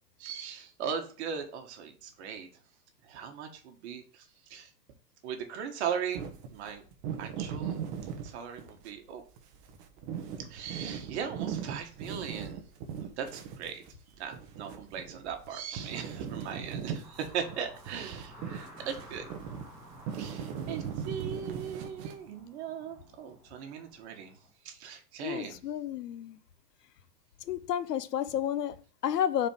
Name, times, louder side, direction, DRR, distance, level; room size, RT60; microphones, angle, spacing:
voice 1, 0.2-2.5 3.0-4.7 5.2-6.8 7.2-7.8 8.2-9.2 10.4-12.6 13.0-13.8 14.2-19.2 20.2-24.4 24.6-25.6, right 7 dB, 45° right, 1.6 m, -38 dB
sound 1, 6.1-9.0 9.4-15.5 15.8-22.4, right 7 dB, 25° right, 0.9 m, -39 dB
sound 2, 17.0-24.5, equal, ahead, 0.4 m, -53 dB
voice 2, 25.2-26.4 27.5-29.5, left 10 dB, 75° left, 0.8 m, -31 dB
5.0 x 4.4 x 5.3 m
hypercardioid pair, 150°, 48 cm